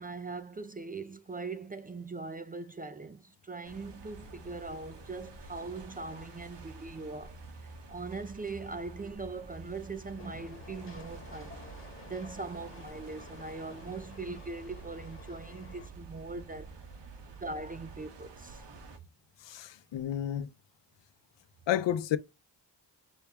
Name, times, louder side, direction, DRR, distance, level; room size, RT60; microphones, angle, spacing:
voice 1, 0.0-7.4 7.9-11.6 12.1-16.7 17.3-18.6, right 3 dB, 20° right, 0.3 m, -41 dB
sound 1, 3.6-19.0, right 3 dB, 70° right, 1.3 m, -49 dB
Train, 10.2-15.9, left 3 dB, 30° left, 1.1 m, -52 dB
voice 2, 19.4-20.5 21.7-22.2, left 11 dB, 75° left, 0.6 m, -31 dB
5.5 x 2.2 x 3.4 m
cardioid pair, 85°, 44 cm